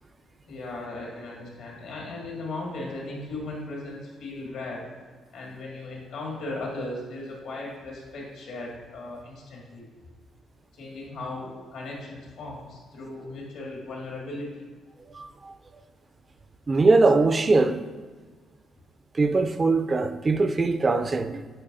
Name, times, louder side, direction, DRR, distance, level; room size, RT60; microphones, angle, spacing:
voice 1, 0.5-4.9 5.3-9.9 10.7-14.5, left 2 dB, 80° left, 1.9 m, -37 dB
voice 2, 15.1-15.5 16.7-17.8 19.1-21.5, right 3 dB, 30° right, 0.3 m, -21 dB
8.5 x 4.6 x 2.6 m
cardioid pair, 90°, 0 cm